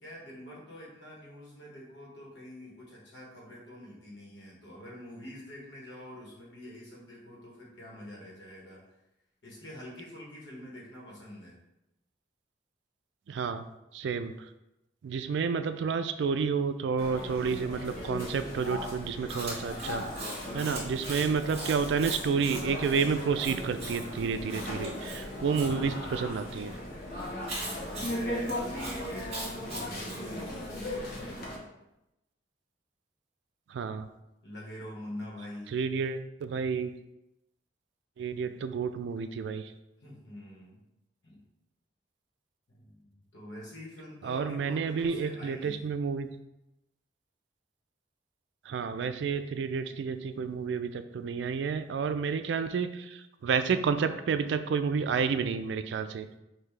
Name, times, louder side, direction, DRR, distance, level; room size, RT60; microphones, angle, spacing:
voice 1, 0.0-8.9 9.4-11.6 27.5-31.4 34.4-35.8 40.0-40.8 41.2-41.4 42.7-45.9, left 1 dB, 70° left, -4 dB, 1.5 m, -46 dB
voice 2, 13.3-13.6 13.9-14.5 15.0-20.1 20.5-26.7 33.7-34.1 35.7-36.9 38.2-39.7 44.2-46.3 48.7-56.3, right 5 dB, 75° right, 10 dB, 0.3 m, -30 dB
sound 1, 17.0-31.6, left 1 dB, 50° left, 1.0 m, -38 dB
Chewing mastication, 19.3-25.7 27.5-30.2, right 2 dB, 35° right, 1.7 m, -41 dB
5.7 x 2.7 x 3.2 m, 0.89 s
head